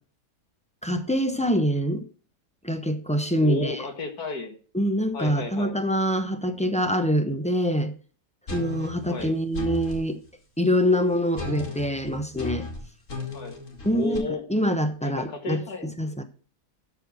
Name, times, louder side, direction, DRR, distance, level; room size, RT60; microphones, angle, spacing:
voice 1, 0.8-2.0 2.6-3.8 4.7-7.9 8.5-10.2 10.6-12.7 13.8-14.2 14.5-15.6 16.0-16.2, equal, 5° left, 0.5 m, -25 dB
voice 2, 3.4-4.5 5.1-5.8 9.1-9.3 13.3-13.6 13.9-14.5 15.0-16.2, left 3 dB, 75° left, 2.2 m, -33 dB
sound 1, 8.5-10.1 11.4-14.2, left 3 dB, 50° left, 2.4 m, -35 dB
12.5 x 4.5 x 6.0 m
omnidirectional pair, 1.7 m